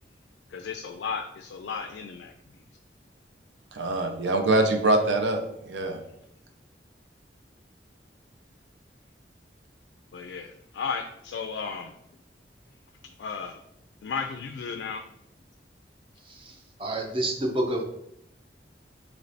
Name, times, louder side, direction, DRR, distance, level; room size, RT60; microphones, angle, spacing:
voice 1, 0.5-2.3 10.1-10.5 10.7-11.9 13.2-13.6 14.0-15.0, left 5 dB, 85° left, 5 dB, 0.3 m, -34 dB
voice 2, 3.7-6.0, right 2 dB, 90° right, 4 dB, 0.5 m, -24 dB
voice 3, 16.8-17.8, right 1 dB, 30° right, 2 dB, 0.6 m, -27 dB
3.2 x 3.0 x 3.9 m, 0.78 s
head